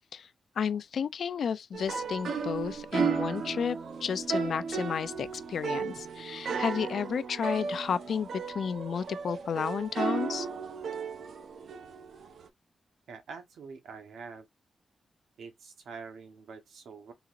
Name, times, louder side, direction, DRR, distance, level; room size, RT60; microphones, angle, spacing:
voice 1, 0.6-8.3 8.5-10.5, left 7 dB, 70° left, 0.4 m, -32 dB
sound 1, 1.7-12.5, right 5 dB, 75° right, 0.6 m, -34 dB
voice 2, 13.1-14.5 15.4-17.1, right 5 dB, 90° right, 1.0 m, -45 dB
3.9 x 2.8 x 2.5 m
wide cardioid pair, 115°, 0 cm